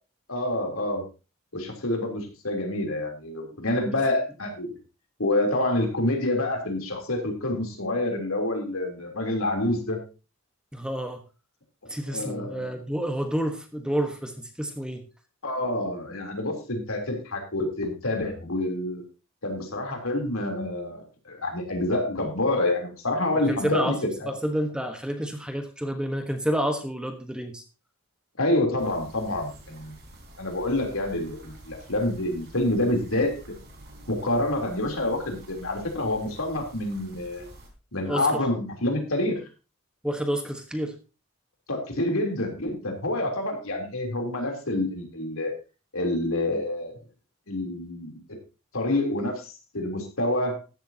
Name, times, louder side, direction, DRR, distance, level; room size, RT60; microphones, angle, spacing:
voice 1, 0.3-1.0 1.5-4.8 5.2-10.0 11.8-12.7 15.4-19.0 19.4-24.3 28.4-29.9 30.4-33.6 34.1-37.5 37.9-39.4 41.7-45.6 45.9-47.0 47.5-48.2 48.7-50.6, left 1 dB, 75° left, 2 dB, 3.4 m, -27 dB
voice 2, 10.7-11.2 11.9-15.0 23.5-24.0 24.3-27.6 38.0-38.3 40.0-41.0, equal, 5° right, 5 dB, 1.2 m, -29 dB
sound 1, 28.8-37.7, right 1 dB, 50° right, 3.9 m, -48 dB
14.5 x 11.5 x 2.8 m, 0.31 s
head